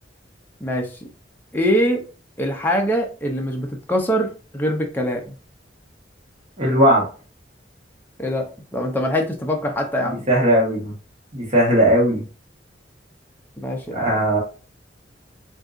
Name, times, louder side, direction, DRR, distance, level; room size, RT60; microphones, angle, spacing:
voice 1, 1.5-2.0 2.4-5.3 8.2-10.2 13.6-14.1, equal, 10° left, 1 dB, 0.5 m, -23 dB
voice 2, 6.6-7.1 10.3-10.9 11.3-12.2 13.9-14.4, right 1 dB, 40° right, -3 dB, 1.1 m, -17 dB
3.7 x 2.7 x 2.4 m, 0.35 s
head